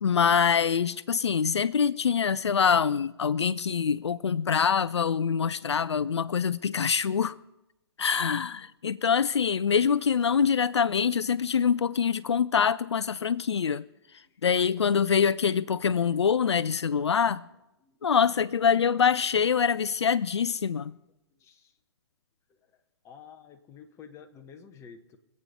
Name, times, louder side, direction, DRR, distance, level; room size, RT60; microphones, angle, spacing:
voice 1, 0.0-7.3 8.0-13.8 14.4-17.4 18.0-20.9, left 6 dB, 80° left, 0.4 m, -25 dB
voice 2, 21.3-21.7 22.5-25.2, left 7 dB, 20° left, 1.2 m, -51 dB
25.0 x 8.5 x 4.2 m
figure-of-eight pair, 120°, 14 cm